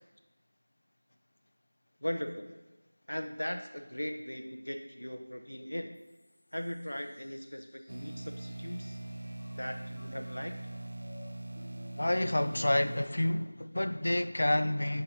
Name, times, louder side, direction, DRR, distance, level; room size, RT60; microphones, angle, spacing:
voice 1, 2.0-2.5 3.1-6.0 6.5-9.0 9.6-10.5, equal, 80° left, 0.9 m, -39 dB
sound 1, 5.9-14.1, left 2 dB, 20° left, 0.6 m, -58 dB
sound 2, 7.9-13.1, right 1 dB, 45° right, 0.3 m, -42 dB
voice 2, 12.0-15.0, left 1 dB, 60° left, 0.5 m, -29 dB
13.0 x 5.3 x 2.9 m
figure-of-eight pair, 170°, 0 cm